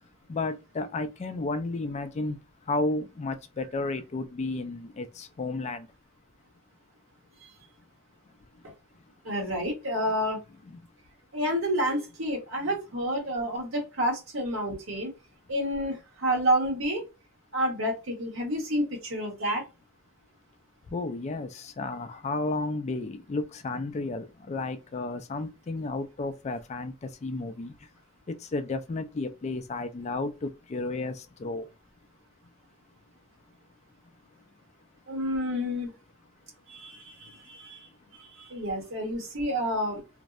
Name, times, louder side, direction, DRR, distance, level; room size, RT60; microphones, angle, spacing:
voice 1, 0.3-2.4 2.7-5.9 10.7-10.8 20.9-27.7 28.3-31.7, left 2 dB, 35° left, 0.3 m, -32 dB
voice 2, 9.2-10.4 11.3-15.1 15.5-17.0 17.5-19.6 35.1-35.9 36.7-37.9 38.1-40.0, equal, 80° right, 1.1 m, -29 dB
2.6 x 2.0 x 2.3 m
head